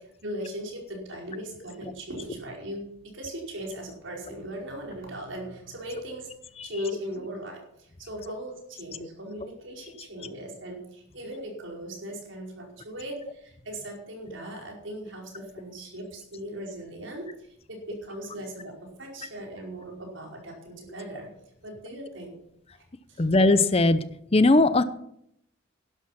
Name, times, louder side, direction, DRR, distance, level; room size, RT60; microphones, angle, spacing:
voice 1, 0.2-6.3 6.6-17.3 17.7-21.3 21.6-22.4 22.7-22.8 23.1-23.2, equal, 75° right, 0 dB, 4.9 m, -38 dB
voice 2, 23.2-24.0 24.3-24.8, left 2 dB, 30° left, 13 dB, 0.6 m, -19 dB
12.0 x 11.0 x 5.9 m, 0.74 s
head